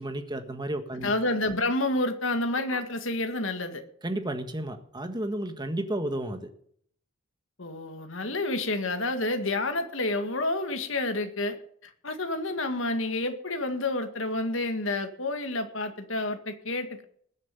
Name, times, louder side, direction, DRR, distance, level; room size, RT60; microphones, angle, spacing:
voice 1, 0.0-1.1 4.0-6.5, right 1 dB, 20° right, 7 dB, 1.5 m, -32 dB
voice 2, 1.0-3.8 7.6-11.6 11.8-17.0, left 2 dB, 65° left, 7 dB, 1.9 m, -29 dB
20.5 x 7.5 x 5.4 m, 0.63 s
head